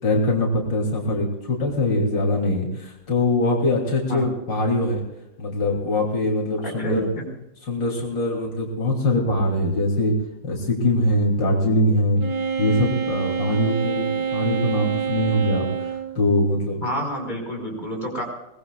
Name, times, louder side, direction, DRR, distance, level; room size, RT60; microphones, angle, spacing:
voice 1, 0.0-5.0 5.4-7.1 7.7-10.2 10.4-12.2 12.6-15.7 16.2-16.8, left 1 dB, 75° left, -2 dB, 3.7 m, -22 dB
voice 2, 6.6-7.2 16.8-18.2, equal, 25° left, 0 dB, 4.9 m, -29 dB
Wind instrument woodwind instrument, 12.2-16.2, right 6 dB, 60° right, 1.8 m, -27 dB
23.0 x 20.0 x 2.4 m, 0.91 s
omnidirectional pair, 2.0 m